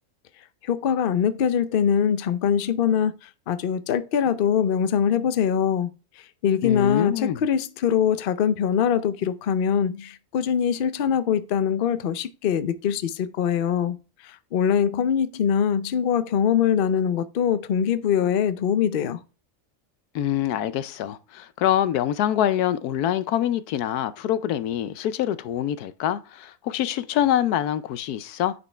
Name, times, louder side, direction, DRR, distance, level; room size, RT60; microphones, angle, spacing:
voice 1, 0.7-3.2 3.5-5.9 6.4-14.0 14.2-19.2, left 8 dB, 55° left, 0.6 m, -23 dB
voice 2, 6.6-7.4 20.1-28.5, left 11 dB, 85° left, 1.2 m, -25 dB
9.4 x 5.2 x 3.3 m
omnidirectional pair, 1.6 m